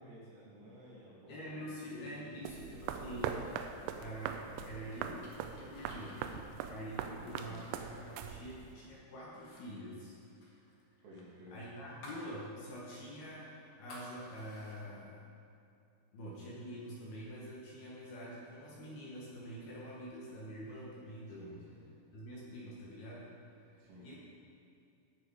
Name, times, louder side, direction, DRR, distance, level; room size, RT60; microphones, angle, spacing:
voice 1, 0.0-2.3 2.7-3.1 7.2-7.6 11.0-11.6 21.4-21.9 23.8-24.1, equal, 60° right, -7 dB, 4.4 m, -54 dB
voice 2, 1.3-3.7 3.9-6.2 6.6-10.2 11.5-15.2 16.1-21.6 22.1-23.3 24.0-24.2, equal, 65° left, -6 dB, 3.0 m, -46 dB
sound 1, 2.5-8.7, right 8 dB, 85° right, 3.1 m, -42 dB
sound 2, 4.3-8.9 9.3-9.6 9.9-12.3 12.7-12.8 13.2-14.8, left 1 dB, 80° left, 1.3 m, -55 dB
17.5 x 6.5 x 4.9 m, 2.6 s
omnidirectional pair, 5.7 m